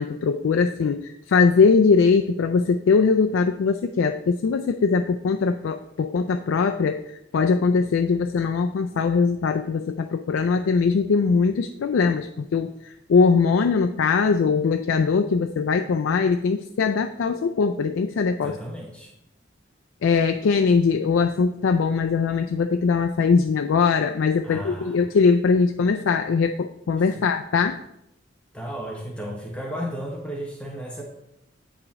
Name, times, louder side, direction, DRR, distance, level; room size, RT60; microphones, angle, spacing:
voice 1, 0.0-18.6 20.0-27.8, left 5 dB, 90° left, 6 dB, 0.4 m, -21 dB
voice 2, 18.4-19.1 24.4-25.1 27.1-27.2 28.5-31.0, equal, 5° left, -1 dB, 0.9 m, -34 dB
8.8 x 5.0 x 3.6 m, 0.81 s
head